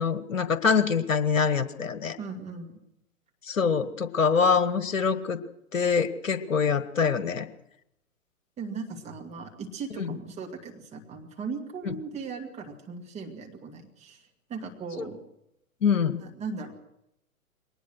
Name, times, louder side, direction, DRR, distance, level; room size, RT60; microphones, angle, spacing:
voice 1, 0.0-2.2 3.5-5.4 5.7-7.5 10.0-10.1 11.8-11.9 15.8-16.2, left 6 dB, 60° left, 13 dB, 1.6 m, -24 dB
voice 2, 2.2-2.8 3.8-3.9 8.6-15.2 16.2-16.7, right 4 dB, 15° right, 2 dB, 2.2 m, -38 dB
22.5 x 19.5 x 6.3 m, 0.81 s
figure-of-eight pair, 120°, 43 cm